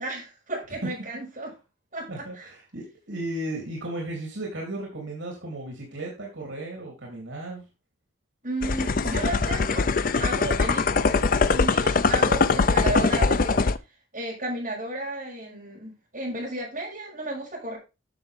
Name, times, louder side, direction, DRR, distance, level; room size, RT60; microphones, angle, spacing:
voice 1, 0.0-1.5 1.9-2.5 8.4-9.9 10.2-11.2 11.5-13.6 14.1-17.8, right 2 dB, 45° right, -3 dB, 6.7 m, -33 dB
voice 2, 2.1-7.6, right 1 dB, 75° right, -1 dB, 3.6 m, -35 dB
sound 1, 8.6-13.8, left 4 dB, 45° left, 0.5 m, -22 dB
11.5 x 6.9 x 3.7 m, 0.27 s
head